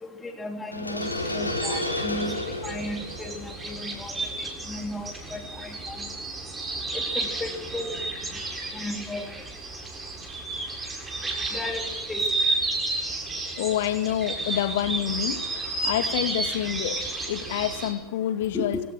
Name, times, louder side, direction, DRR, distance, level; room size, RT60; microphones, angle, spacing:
voice 1, 0.0-4.1 4.4-6.0 6.9-7.9 8.7-9.3 11.5-12.3 18.5-18.8, left 2 dB, 10° left, 5 dB, 3.2 m, -35 dB
sound 1, 0.7-4.6, left 1 dB, 85° left, 3.5 m, -32 dB
sound 2, 1.0-17.9, right 2 dB, 15° right, 7.1 m, -32 dB
voice 2, 13.6-15.4 15.8-18.8, left 12 dB, 55° left, 11 dB, 2.3 m, -27 dB
25.5 x 17.5 x 6.4 m, 0.81 s
figure-of-eight pair, 90°, 0 cm